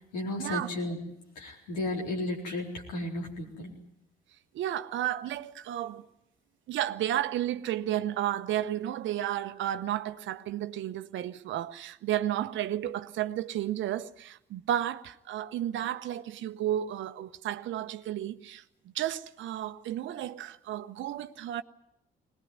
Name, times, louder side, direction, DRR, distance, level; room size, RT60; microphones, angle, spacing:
voice 1, 0.1-1.0 1.4-3.7, left 1 dB, 85° left, 4.3 m, -33 dB
voice 2, 4.5-6.1 6.7-21.6, right 12 dB, 65° right, 0.9 m, -32 dB
21.5 x 19.0 x 9.6 m
hypercardioid pair, 45°, 21 cm